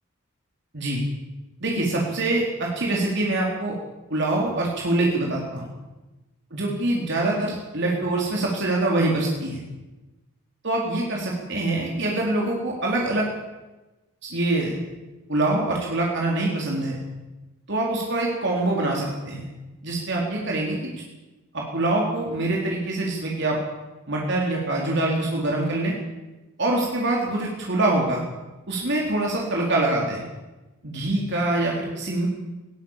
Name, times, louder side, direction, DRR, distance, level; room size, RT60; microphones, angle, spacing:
voice 1, 1.6-3.8 4.1-5.7 6.5-9.6 10.6-13.3 14.2-14.7 15.3-17.0 17.7-19.5 19.8-20.8 21.5-23.6 24.1-25.9 26.6-28.2 28.7-30.2 30.8-32.3, right 2 dB, 55° right, -2 dB, 4.0 m, -24 dB
20.0 x 19.0 x 7.4 m, 1.1 s
head